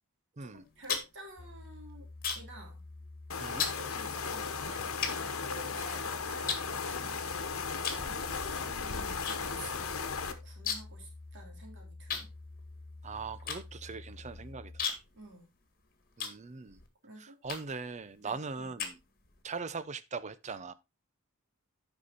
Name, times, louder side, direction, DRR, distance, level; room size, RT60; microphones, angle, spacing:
voice 1, 0.4-2.1 2.3-2.9 3.8-6.6 6.8-7.4 8.1-10.0 10.3-12.3 15.1-15.5 17.0-17.4 18.2-18.7, right 1 dB, 55° right, 3.0 m, -50 dB
sound 1, 0.6-2.6 2.9-3.2 3.6-3.8 4.4-4.5 5.0-6.0 6.5-7.3 7.8-8.1 8.4-9.4 9.7-9.8 10.0-11.0 11.3-11.4 12.1-16.9 17.4-17.9 18.4-19.4, left 6 dB, 45° left, 1.9 m, -37 dB
sound 2, 1.4-14.9, left 2 dB, 25° left, 0.7 m, -49 dB
sound 3, 3.3-10.3, left 5 dB, 70° left, 1.2 m, -36 dB
voice 2, 13.0-14.9 16.2-16.8 17.2-19.0 19.4-20.7, right 4 dB, 35° right, 0.6 m, -40 dB
9.8 x 5.5 x 4.1 m
head